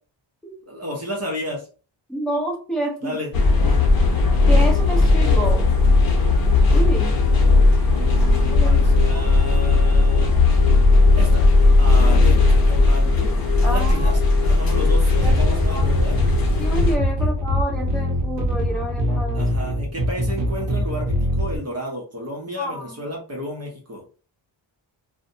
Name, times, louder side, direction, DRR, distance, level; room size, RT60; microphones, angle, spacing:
voice 1, 0.6-1.7 3.0-3.3 7.8-10.3 11.2-11.4 11.8-13.3 13.6-16.2 19.3-24.0, equal, 35° right, -1 dB, 0.7 m, -32 dB
voice 2, 2.1-3.2 4.5-5.6 6.7-7.2 8.5-8.9 9.1-9.2 10.2-10.3 13.6-14.1 14.8-14.9 15.2-15.9 16.6-19.5 22.6-23.0, right 1 dB, ahead, -2 dB, 0.7 m, -29 dB
sound 1, 3.3-17.0, left 3 dB, 50° left, 0.7 m, -16 dB
sound 2, 15.2-21.6, left 1 dB, 65° right, 0.7 m, -23 dB
2.6 x 2.1 x 2.6 m, 0.37 s
wide cardioid pair, 180°, 46 cm